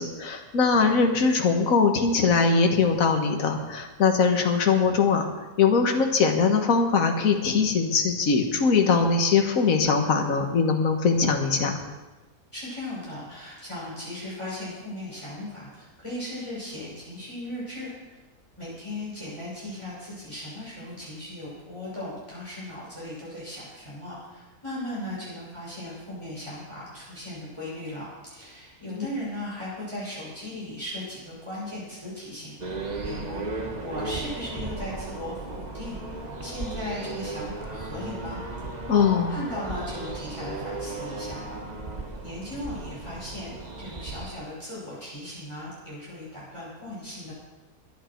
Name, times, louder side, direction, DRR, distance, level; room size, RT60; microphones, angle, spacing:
voice 1, 0.0-5.3 5.6-11.8 38.9-39.4, left 5 dB, 60° left, 3 dB, 1.8 m, -21 dB
voice 2, 12.5-18.2 18.6-32.8 33.0-36.0 36.4-38.4 39.3-41.6 42.2-47.3, left 1 dB, 20° left, -8 dB, 6.4 m, -37 dB
sound 1, 32.6-44.3, right 3 dB, 30° right, 1.3 m, -35 dB
22.5 x 9.5 x 4.6 m, 1.1 s
omnidirectional pair, 1.6 m